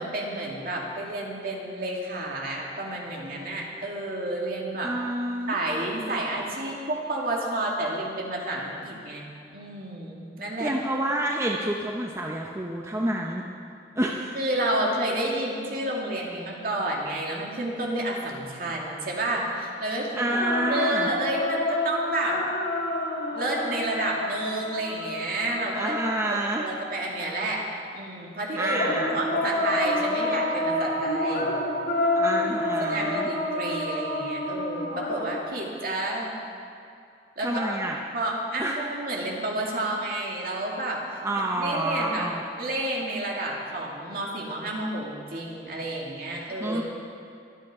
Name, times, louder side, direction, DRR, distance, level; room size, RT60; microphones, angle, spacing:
voice 1, 0.0-4.9 5.5-10.8 14.3-20.4 20.7-22.4 23.3-26.0 26.6-27.7 27.9-31.5 32.3-32.5 32.8-36.4 37.4-37.7 38.1-41.0 41.4-42.3 42.6-46.8, right 1 dB, 55° right, -2 dB, 2.4 m, -30 dB
voice 2, 4.8-5.6 10.6-13.4 13.9-14.4 20.1-21.1 25.7-26.7 28.6-29.2 32.1-33.3 37.4-38.0 38.6-38.7 41.2-42.4 46.5-46.8, right 1 dB, 15° right, 0 dB, 0.8 m, -28 dB
sound 1, 20.3-26.6 28.8-35.4, left 1 dB, 60° left, 1.9 m, -28 dB
23.5 x 8.4 x 4.9 m, 2.5 s
head